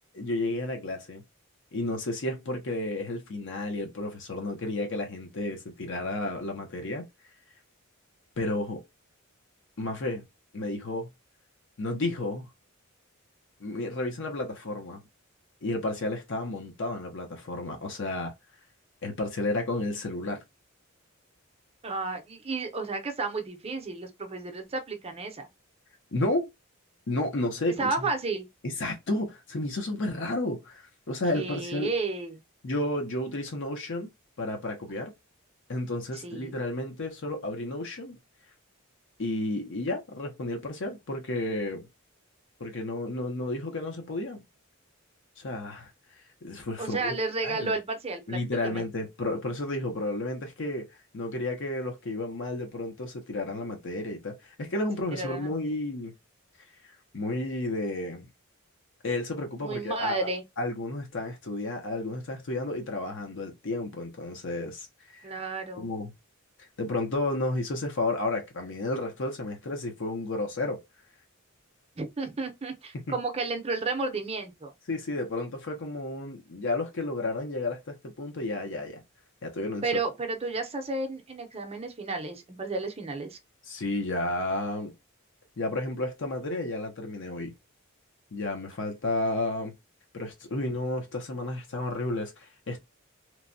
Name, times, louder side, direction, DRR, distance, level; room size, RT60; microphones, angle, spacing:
voice 1, 0.1-1.2 1.7-7.0 8.4-8.8 9.8-10.2 10.5-11.1 11.8-12.5 13.6-15.0 15.6-18.3 19.0-20.4 26.1-26.5 27.1-28.1 28.6-31.9 32.6-34.1 34.4-35.1 35.7-38.2 39.2-41.9 42.6-44.4 45.4-47.1 47.4-47.7 48.3-50.9 51.1-56.1 56.8-58.3 59.0-60.2 60.6-65.3 65.7-66.1 66.8-70.8 72.9-73.1 74.9-79.0 79.4-79.8 83.7-84.9 85.6-87.5 88.3-89.7 90.1-92.8, left 2 dB, 60° left, 0.7 m, -32 dB
voice 2, 21.8-25.5 27.8-28.5 31.3-32.4 36.2-36.6 46.8-48.9 55.1-55.6 59.6-60.4 65.2-65.9 72.0-74.7 79.8-83.4, right 3 dB, 30° right, 0.6 m, -32 dB
3.0 x 2.2 x 2.6 m
head